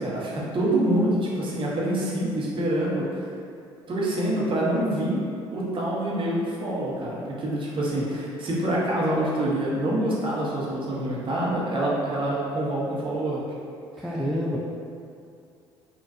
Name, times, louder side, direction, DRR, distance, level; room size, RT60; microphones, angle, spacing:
voice 1, 0.0-3.3 3.9-5.2 5.5-13.4, right 1 dB, 35° right, -5 dB, 0.9 m, -26 dB
voice 2, 14.0-14.6, equal, ahead, -5 dB, 0.4 m, -27 dB
4.0 x 2.4 x 2.6 m, 2.5 s
figure-of-eight pair, 55°, 14 cm